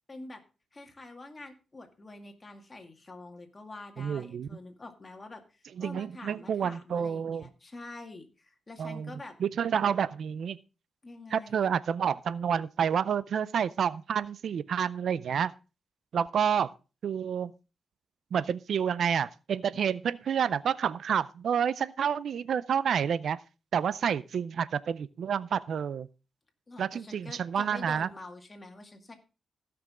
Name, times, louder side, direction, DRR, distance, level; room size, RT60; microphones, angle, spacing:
voice 1, 0.1-0.4 0.7-9.4 11.0-11.7 26.7-29.1, left 2 dB, 30° left, 2.1 m, -46 dB
voice 2, 4.0-4.5 5.8-7.5 8.8-9.1 9.4-10.6 11.3-15.5 16.1-16.7 17.0-17.5 18.3-23.4 23.7-26.1 26.8-28.1, right 7 dB, 75° right, 0.4 m, -29 dB
16.0 x 6.1 x 3.6 m
cardioid pair, 95°, 0 cm